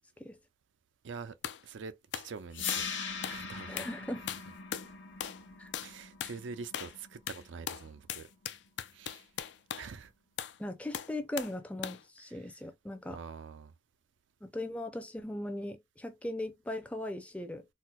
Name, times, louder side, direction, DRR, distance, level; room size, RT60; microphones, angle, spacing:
voice 1, 1.0-1.4 1.6-2.9 3.2-3.9 5.8-8.3 8.9-9.3 9.7-10.1 13.1-13.7, right 5 dB, 90° right, 0.4 m, -45 dB
sound 1, 1.4-1.6 2.1-2.3 2.7-2.9 3.2-3.4 3.8-4.0 4.3-4.9 5.2-5.4 5.7-5.9 6.2-6.4 6.7-7.0 7.3-9.9 10.4-10.6 10.9-11.6 11.8-12.0, left 9 dB, 70° left, 0.4 m, -39 dB
sound 2, 2.5-8.6, left 6 dB, 85° left, 0.9 m, -41 dB
voice 2, 3.7-4.2 5.6-5.7 10.6-13.2 14.4-17.7, left 1 dB, 5° left, 0.4 m, -39 dB
4.2 x 2.0 x 2.3 m
head